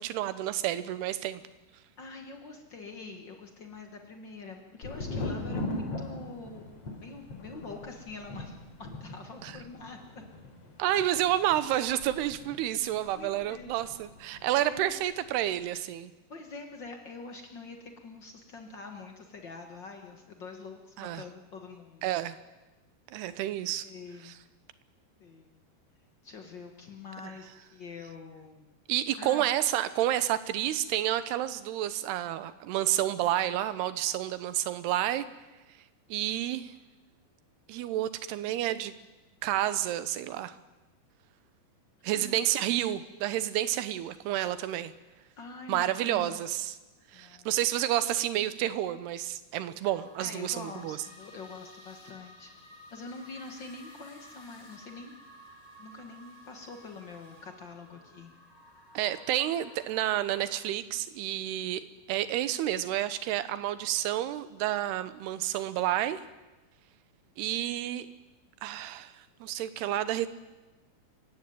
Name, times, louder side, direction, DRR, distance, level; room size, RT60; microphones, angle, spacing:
voice 1, 0.0-1.4 9.4-9.5 10.8-16.1 21.0-21.2 22.0-22.4 23.1-23.9 24.2-24.3 27.2-27.3 28.9-35.2 36.1-36.7 37.7-38.9 39.4-40.6 42.0-44.9 45.7-46.8 47.1-51.0 58.9-61.8 62.1-66.2 67.4-68.1 68.6-70.3, right 13 dB, 80° right, 13 dB, 3.0 m, -30 dB
voice 2, 2.0-6.7 7.0-10.2 13.1-13.7 14.5-14.9 16.3-22.1 23.1-23.3 23.8-24.4 25.2-25.6 26.2-28.7 29.2-29.5 42.0-42.5 45.4-46.4 47.1-47.6 49.8-49.9 50.2-52.6 52.9-55.1 55.8-58.3, left 4 dB, 75° left, 4 dB, 1.0 m, -45 dB
Thunder, 4.8-14.5 14.7-15.5, left 2 dB, 40° left, 4.1 m, -40 dB
sound 1, 49.9-60.7, left 1 dB, 15° left, 1.2 m, -54 dB
26.0 x 16.0 x 9.3 m, 1.1 s
omnidirectional pair, 4.7 m